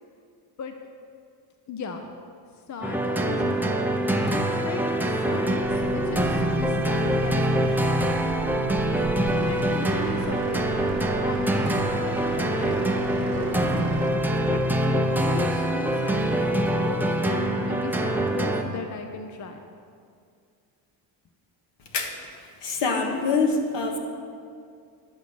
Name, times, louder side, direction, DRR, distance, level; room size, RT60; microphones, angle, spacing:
voice 1, 1.7-2.1 2.7-8.2 9.3-10.9 11.2-13.9 14.5-19.6, left 5 dB, 40° left, 5 dB, 0.7 m, -37 dB
sound 1, 2.8-18.6, right 1 dB, 5° right, 0.7 m, -24 dB
sound 2, 5.6-14.1, right 4 dB, 85° right, 1.3 m, -36 dB
voice 2, 22.6-24.0, left 4 dB, 70° left, 3 dB, 1.6 m, -24 dB
11.0 x 6.8 x 6.2 m, 2.3 s
cardioid pair, 100°, 45 cm